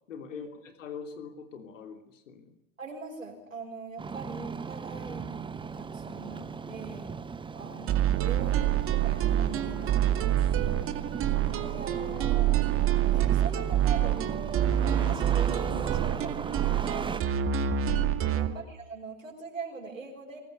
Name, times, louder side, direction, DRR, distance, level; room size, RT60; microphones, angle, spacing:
voice 1, 0.1-2.5 18.2-18.5, left 6 dB, 75° left, 7 dB, 3.2 m, -43 dB
voice 2, 2.8-7.1 7.5-10.9 11.4-12.5 13.1-17.3 18.4-20.4, right 4 dB, 90° right, -4 dB, 5.9 m, -42 dB
Engine starting, 4.0-17.2, right 5 dB, 10° right, 1.1 m, -38 dB
sound 1, 7.9-18.5, right 11 dB, 35° right, 2.2 m, -26 dB
22.5 x 19.0 x 9.5 m, 0.77 s
hypercardioid pair, 95°, 38 cm